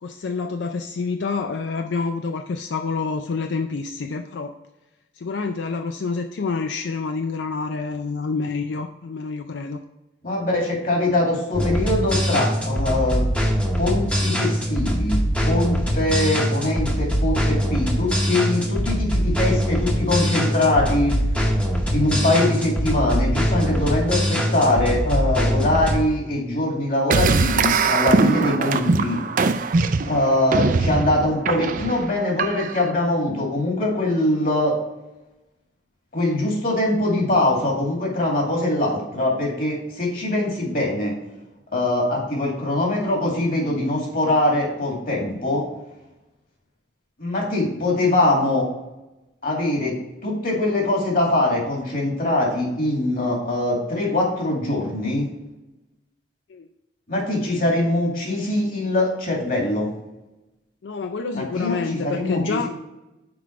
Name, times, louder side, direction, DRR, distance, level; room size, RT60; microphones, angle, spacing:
voice 1, 0.0-4.5 5.1-9.8 56.5-56.7 60.8-62.7, left 4 dB, 85° left, 5 dB, 0.4 m, -27 dB
voice 2, 10.2-13.2 13.8-21.1 21.9-29.2 30.1-34.8 36.1-41.2 41.7-45.6 47.2-48.7 49.4-50.0 50.2-55.3 57.1-59.9 61.3-62.7, left 1 dB, 50° left, -1 dB, 2.2 m, -22 dB
sound 1, 11.5-26.0, equal, 5° left, 0.9 m, -22 dB
sound 2, 27.1-32.9, right 4 dB, 45° right, 0.4 m, -21 dB
6.1 x 4.8 x 4.5 m, 0.98 s
head